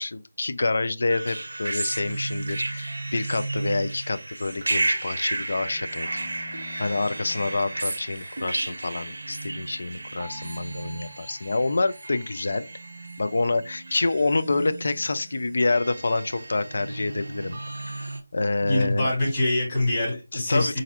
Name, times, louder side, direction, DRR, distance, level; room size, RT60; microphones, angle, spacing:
voice 1, 0.0-6.2 6.8-12.6 13.2-19.1 20.3-20.8, left 3 dB, 50° left, 0.3 m, -27 dB
sound 1, 1.1-18.2, right 2 dB, 50° right, 0.6 m, -33 dB
voice 2, 18.6-20.8, left 1 dB, 25° left, 1.9 m, -24 dB
4.0 x 2.5 x 2.7 m
figure-of-eight pair, 160°, 0 cm